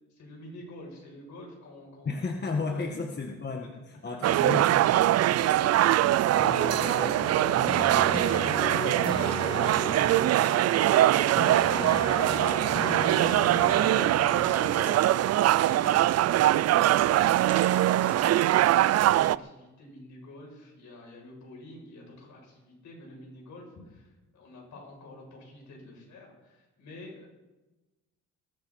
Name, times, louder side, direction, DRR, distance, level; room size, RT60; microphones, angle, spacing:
voice 1, 0.1-2.2 2.7-3.0 4.0-4.5 4.9-12.8 13.3-18.9 19.2-27.3, left 1 dB, 70° left, -1 dB, 7.2 m, -47 dB
voice 2, 2.0-4.7, left 4 dB, 35° left, 2 dB, 1.7 m, -33 dB
sound 1, 4.2-19.4, right 13 dB, 55° right, 0.4 m, -23 dB
sound 2, 6.3-15.0, left 4 dB, 15° left, 0.4 m, -36 dB
Engine / Trickle dribble / Fill (with liquid), 14.2-18.8, right 1 dB, 5° right, 4.5 m, -50 dB
20.5 x 13.0 x 4.2 m, 1.1 s
cardioid pair, 90°, 30 cm